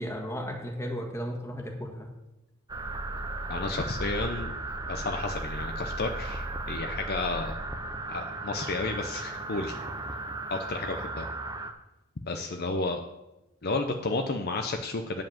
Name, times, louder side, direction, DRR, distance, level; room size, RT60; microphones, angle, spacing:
voice 1, 0.0-2.1, equal, 15° left, 1 dB, 1.7 m, -35 dB
sound 1, 2.7-11.7, right 2 dB, 20° right, 0.7 m, -35 dB
voice 2, 3.5-4.5 4.9-7.5 8.1-9.8 10.5-11.3 12.3-13.0 13.6-15.2, left 3 dB, 50° left, 5 dB, 0.7 m, -32 dB
9.5 x 5.3 x 7.2 m, 0.95 s
head